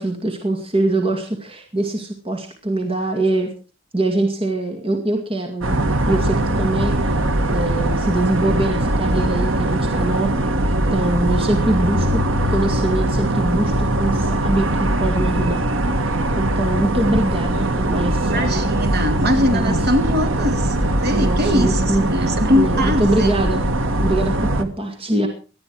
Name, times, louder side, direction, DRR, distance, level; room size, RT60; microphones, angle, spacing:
voice 1, 0.0-3.5 3.9-5.8 6.1-7.1 7.5-10.4 10.7-12.2 12.5-15.6 16.4-18.7 19.5-19.8 21.2-22.0 22.5-23.6 24.0-25.3, right 2 dB, 30° right, 3 dB, 2.3 m, -23 dB
sound 1, 5.6-24.6, right 1 dB, 80° right, 1.7 m, -21 dB
voice 2, 18.3-20.8 21.0-23.3, left 1 dB, 55° right, 6 dB, 3.2 m, -21 dB
18.5 x 12.5 x 4.7 m, 0.36 s
head